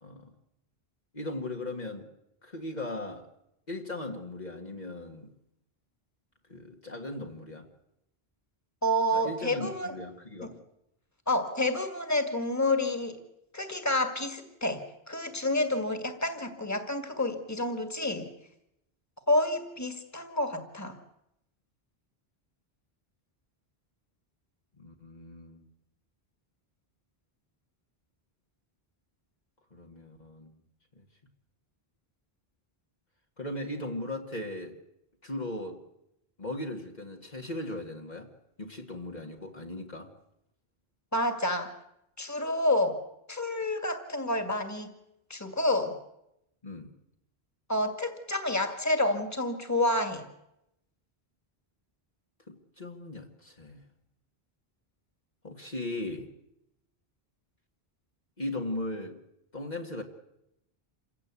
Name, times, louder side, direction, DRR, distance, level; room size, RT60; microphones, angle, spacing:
voice 1, 1.1-2.1 2.4-3.3 3.7-5.3 6.5-7.7 9.1-10.6 24.8-25.6 29.7-30.5 31.0-31.1 33.4-34.7 35.2-35.8 36.4-38.3 38.6-40.1 46.6-46.9 52.5-53.8 55.4-56.3 58.4-59.2 59.5-60.0, left 1 dB, 45° left, 1 dB, 2.0 m, -38 dB
voice 2, 8.8-9.9 11.3-13.2 13.5-14.8 15.1-18.3 19.3-21.0 41.1-41.7 42.2-43.0 43.3-44.9 45.3-46.0 47.7-50.3, left 1 dB, 15° left, 8 dB, 2.2 m, -29 dB
27.5 x 16.5 x 8.4 m, 0.85 s
omnidirectional pair, 1.0 m